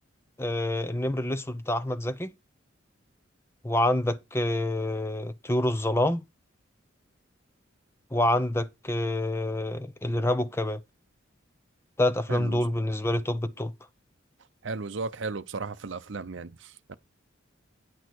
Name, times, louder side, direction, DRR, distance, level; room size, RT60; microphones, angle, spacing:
voice 1, 0.4-2.3 3.6-6.2 8.1-10.8 12.0-13.7, left 1 dB, 10° left, 0.6 m, -27 dB
voice 2, 12.3-12.6 14.6-16.9, right 4 dB, 65° right, 0.6 m, -35 dB
9.4 x 6.4 x 4.6 m
head